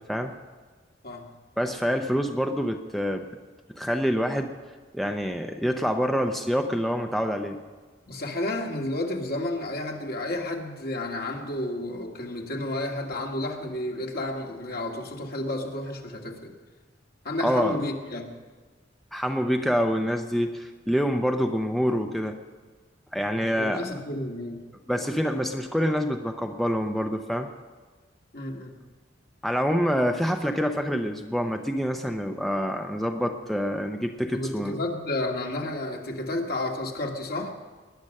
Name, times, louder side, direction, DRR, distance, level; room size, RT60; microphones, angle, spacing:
voice 1, 1.6-3.2 3.8-4.6 4.9-7.6 17.4-17.8 19.1-22.4 23.1-23.8 24.9-27.5 29.4-34.8, equal, ahead, 4 dB, 0.6 m, -26 dB
voice 2, 8.1-16.5 17.2-18.3 23.3-24.6 28.3-28.8 34.3-37.5, left 1 dB, 55° left, 1 dB, 2.0 m, -31 dB
19.5 x 10.5 x 6.5 m, 1.4 s
head